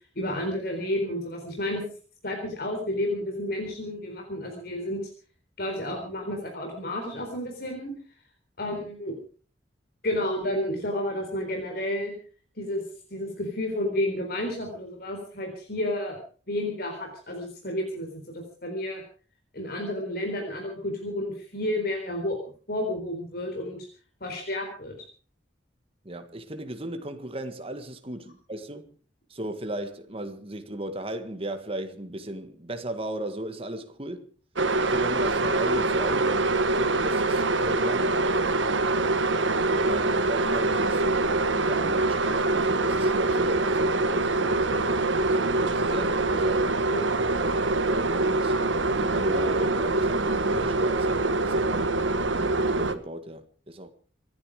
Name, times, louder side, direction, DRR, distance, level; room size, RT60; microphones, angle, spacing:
voice 1, 0.2-1.8 2.2-5.1 5.6-7.9 8.6-9.1 10.0-12.1 12.6-12.8 13.1-16.2 16.5-19.0 19.5-22.4 22.7-23.9 24.2-25.0 46.9-47.2, left 1 dB, 55° left, 4.1 m, -31 dB
voice 2, 26.0-28.9 29.3-34.3 34.9-38.2 39.8-46.7 47.9-53.9, right 1 dB, 30° right, 1.7 m, -36 dB
sound 1, 34.6-52.9, right 2 dB, 85° right, 1.5 m, -24 dB
26.0 x 11.0 x 5.0 m
head